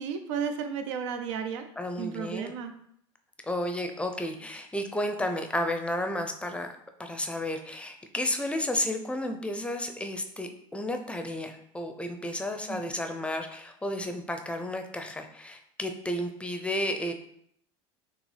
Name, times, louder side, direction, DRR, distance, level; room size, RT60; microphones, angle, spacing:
voice 1, 0.0-1.7 2.0-2.7 12.7-12.8, right 7 dB, 80° right, 7 dB, 0.5 m, -33 dB
voice 2, 1.8-2.5 3.4-6.7 7.0-17.1, left 1 dB, 5° left, 5 dB, 0.5 m, -32 dB
5.8 x 2.0 x 3.3 m, 0.70 s
hypercardioid pair, 95°, 15 cm